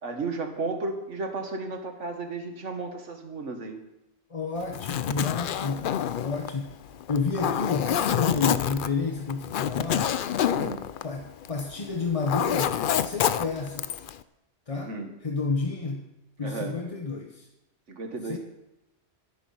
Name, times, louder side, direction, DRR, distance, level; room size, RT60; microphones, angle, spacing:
voice 1, 0.0-3.8 10.5-10.8 14.7-15.1 16.4-16.8 17.9-18.4, right 3 dB, 80° right, 5 dB, 1.8 m, -34 dB
voice 2, 4.3-6.8 7.1-10.2 11.0-14.0 14.7-16.1 16.4-17.5 18.2-18.4, left 4 dB, 30° left, 3 dB, 0.9 m, -31 dB
Zipper (clothing), 4.6-11.7 12.0-14.1, left 9 dB, 60° left, 0.6 m, -27 dB
12.0 x 10.5 x 5.6 m, 0.93 s
omnidirectional pair, 1.2 m